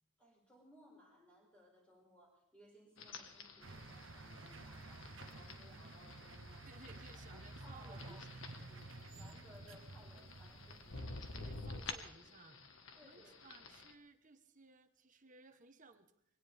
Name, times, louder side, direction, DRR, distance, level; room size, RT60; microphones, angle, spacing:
voice 1, 0.2-6.7 6.9-8.3 8.7-11.2 12.9-13.4 13.6-13.7, equal, 5° left, -3 dB, 6.1 m, -63 dB
sound 1, 3.0-13.9, left 3 dB, 70° left, 1.6 m, -51 dB
sound 2, 3.6-12.1, right 2 dB, 65° right, 1.0 m, -53 dB
voice 2, 6.6-8.4 11.4-12.7 13.0-16.1, right 3 dB, 40° right, 9 dB, 1.2 m, -60 dB
23.0 x 17.5 x 3.6 m, 0.77 s
head